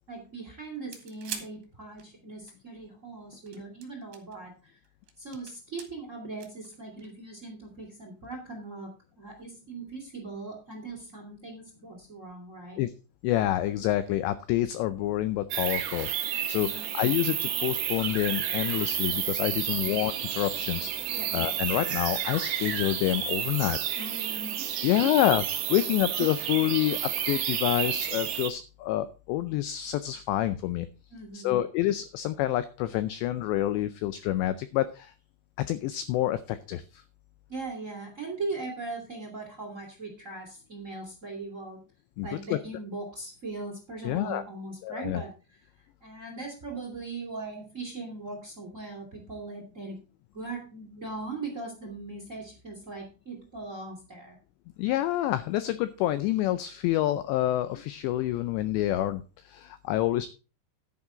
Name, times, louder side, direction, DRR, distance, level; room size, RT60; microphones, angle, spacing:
voice 1, 0.1-4.8 5.2-8.9 9.2-12.8 16.6-16.9 19.8-20.0 21.1-21.3 24.0-24.7 25.0-25.1 31.1-31.6 37.5-41.8 42.2-45.3 46.0-50.0 50.3-54.4, right 3 dB, 25° right, 2 dB, 1.9 m, -39 dB
sound 1, 0.8-2.5 3.3-4.4 4.8-5.9 6.4-7.3 8.3-8.4, right 8 dB, 60° right, 3.3 m, -43 dB
voice 2, 13.2-23.8 24.8-25.4 25.7-27.0 27.3-30.9 31.3-35.1 35.6-37.0 42.2-42.6 44.0-44.4 44.8-45.2 54.8-60.3, left 14 dB, 85° left, 13 dB, 2.5 m, -28 dB
sound 2, 15.5-28.5, right 10 dB, 75° right, 1.9 m, -31 dB
10.5 x 9.7 x 3.8 m, 0.33 s
omnidirectional pair, 5.8 m